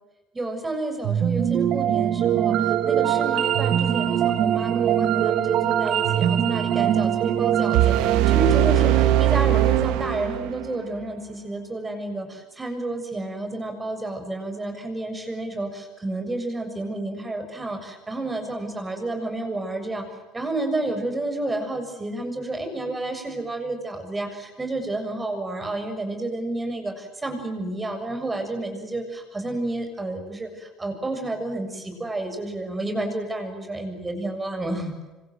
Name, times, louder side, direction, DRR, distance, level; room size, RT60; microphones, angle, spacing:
voice 1, 0.3-20.1 20.3-34.9, right 2 dB, 15° right, 6 dB, 7.1 m, -30 dB
sound 1, 1.0-10.2, right 10 dB, 55° right, 1.6 m, -23 dB
sound 2, 7.7-10.8, right 13 dB, 80° right, 1.5 m, -20 dB
26.5 x 26.5 x 8.0 m, 1.2 s
cardioid pair, 130°, 0 cm